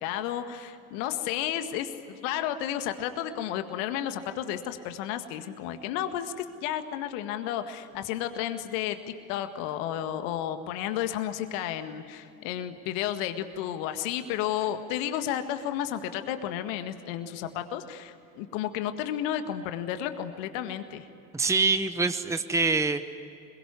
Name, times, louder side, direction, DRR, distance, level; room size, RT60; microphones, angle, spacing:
voice 1, 0.0-9.0 9.3-21.1, left 11 dB, 60° left, 8 dB, 1.9 m, -32 dB
voice 2, 21.3-23.0, right 4 dB, 5° right, 10 dB, 1.1 m, -25 dB
27.0 x 22.0 x 9.8 m, 2.6 s
hypercardioid pair, 70°, 43 cm